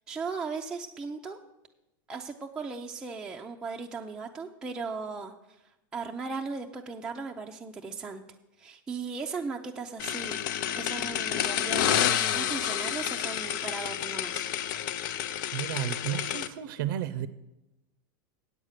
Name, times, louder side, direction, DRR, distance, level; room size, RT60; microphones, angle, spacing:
voice 1, 0.1-1.4 2.1-5.3 5.9-8.2 8.6-10.4 10.8-14.8, right 4 dB, 5° right, 0 dB, 0.5 m, -37 dB
sound 1, 10.0-16.5, left 10 dB, 65° left, 0.6 m, -29 dB
voice 2, 15.5-17.3, right 11 dB, 70° right, 14 dB, 0.6 m, -32 dB
8.8 x 8.2 x 6.5 m, 0.95 s
supercardioid pair, 155°, 11 cm